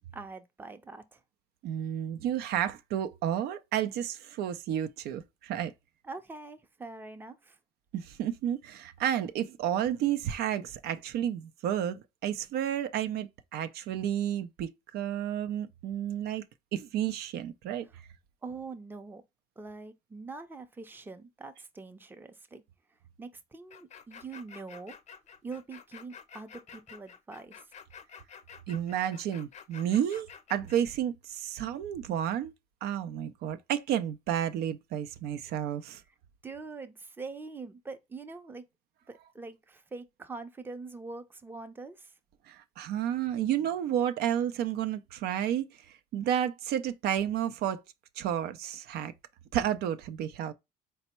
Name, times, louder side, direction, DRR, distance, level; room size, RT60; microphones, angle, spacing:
voice 1, 0.1-1.2 6.0-7.6 18.4-19.2 19.6-22.6 23.2-24.9 25.4-27.6 36.4-38.6 39.1-42.1, right 3 dB, 10° right, 0.5 m, -43 dB
voice 2, 1.6-5.7 7.9-16.4 16.7-17.9 28.7-32.5 32.8-36.0 42.5-47.8 48.2-49.1 49.5-50.5, right 10 dB, 75° right, 0.4 m, -31 dB
sound 1, 23.7-30.8, left 7 dB, 45° left, 0.5 m, -50 dB
4.3 x 2.0 x 4.2 m
cardioid pair, 110°, 17 cm